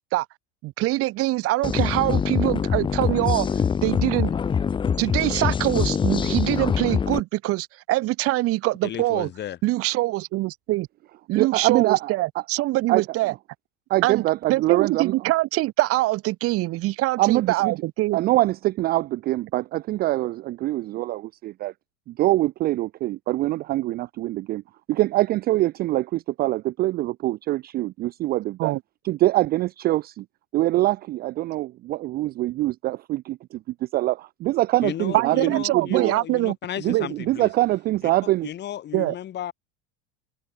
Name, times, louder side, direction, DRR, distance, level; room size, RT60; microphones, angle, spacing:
voice 1, 0.6-3.5 3.8-4.3 5.0-9.3 9.6-10.9 11.3-13.3 14.0-18.2 28.6-28.8 35.1-36.6 36.9-37.1 38.9-39.1, right 18 dB, 50° right, 2.0 m, -24 dB
sound 1, 1.6-7.2, left 6 dB, 15° left, 0.6 m, -24 dB
voice 2, 8.8-9.6 34.8-37.5 38.4-39.5, left 11 dB, 35° left, 3.1 m, -34 dB
voice 3, 11.3-12.1 12.9-13.0 13.9-15.1 17.2-17.8 18.1-21.7 22.1-24.6 24.9-28.8 29.0-30.2 30.5-36.1 36.8-38.5, right 17 dB, 30° right, 0.4 m, -24 dB
supercardioid pair, 125°, 31 cm